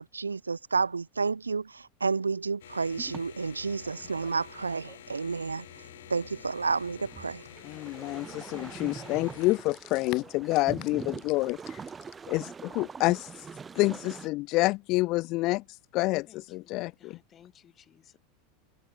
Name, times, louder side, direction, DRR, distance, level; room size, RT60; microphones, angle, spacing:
voice 1, 0.0-5.7 6.1-7.4, right 4 dB, 85° right, 0.5 m, -30 dB
sound 1, 2.6-9.6, left 12 dB, 65° left, 1.3 m, -49 dB
sound 2, 3.0-14.3, right 5 dB, 20° right, 0.5 m, -45 dB
voice 2, 7.6-11.8 12.3-13.5 13.8-17.2, left 21 dB, 45° left, 0.3 m, -28 dB
voice 3, 16.3-18.2, left 9 dB, 30° left, 7.2 m, -59 dB
figure-of-eight pair, 85°, 0 cm